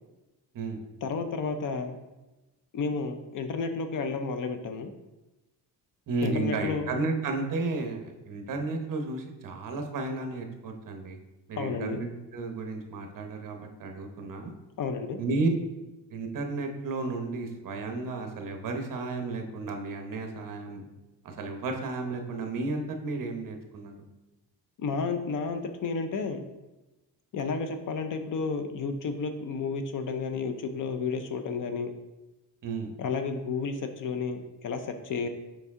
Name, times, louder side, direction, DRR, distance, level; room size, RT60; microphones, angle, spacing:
voice 1, 1.0-2.0 2.7-4.9 6.2-6.9 11.6-12.0 14.8-15.2 24.8-26.4 27.3-31.9 33.0-35.3, left 4 dB, 50° left, 7 dB, 0.6 m, -31 dB
voice 2, 6.1-11.2 11.5-14.5 15.2-15.5 16.1-20.9 21.2-23.9 32.6-32.9, right 3 dB, 50° right, 4 dB, 0.9 m, -33 dB
7.0 x 4.7 x 3.6 m, 1.1 s
cardioid pair, 165°, 41 cm